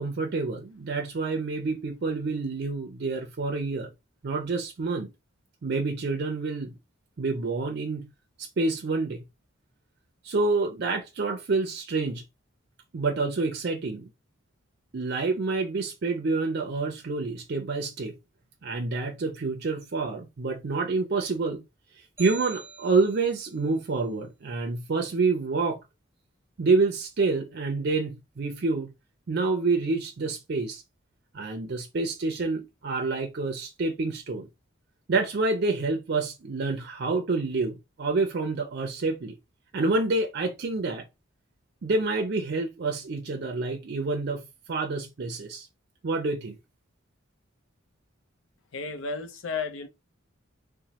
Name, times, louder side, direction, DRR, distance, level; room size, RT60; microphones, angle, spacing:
voice 1, 0.0-3.9 4.2-5.1 5.6-6.7 7.2-8.1 8.4-9.2 10.2-12.2 12.9-14.1 14.9-18.1 18.6-21.6 22.2-25.8 26.6-28.9 29.3-30.8 31.3-34.5 35.1-39.4 39.7-41.0 41.8-44.4 44.7-45.7 46.0-46.6, right 3 dB, 50° right, 0.4 m, -28 dB
sound 1, 22.2-23.6, right 4 dB, 15° right, 0.7 m, -44 dB
voice 2, 48.7-49.9, left 4 dB, 75° left, 0.6 m, -33 dB
3.0 x 2.1 x 2.8 m
head